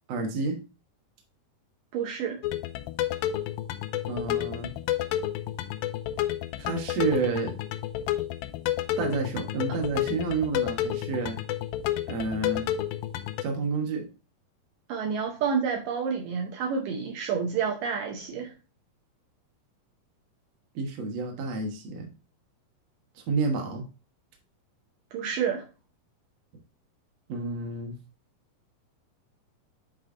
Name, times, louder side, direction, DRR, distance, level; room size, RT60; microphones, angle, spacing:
voice 1, 0.1-0.6 4.1-4.7 6.6-7.5 9.0-11.4 12.1-12.7 13.4-14.1 20.7-22.1 23.2-23.9 27.3-28.0, right 3 dB, 55° right, 2.1 m, -30 dB
voice 2, 1.9-2.4 14.9-18.5 25.1-25.7, right 6 dB, 75° right, 2.3 m, -29 dB
sound 1, 2.4-13.4, left 12 dB, 80° left, 2.3 m, -30 dB
8.8 x 3.3 x 3.8 m
omnidirectional pair, 4.2 m